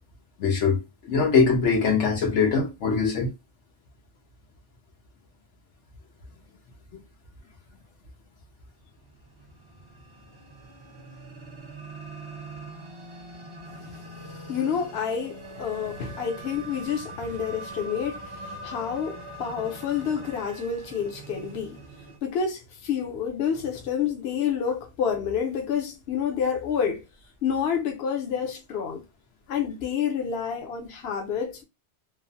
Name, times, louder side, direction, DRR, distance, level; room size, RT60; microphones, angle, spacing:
voice 1, 0.4-0.8 1.1-3.3, left 5 dB, 85° left, 1.2 m, -22 dB
sound 1, 9.1-22.2, right 2 dB, 30° right, 0.6 m, -42 dB
voice 2, 14.5-21.8 22.2-27.0 27.4-29.0 29.5-31.6, left 7 dB, 65° left, 0.9 m, -29 dB
3.1 x 2.1 x 2.6 m
omnidirectional pair, 1.2 m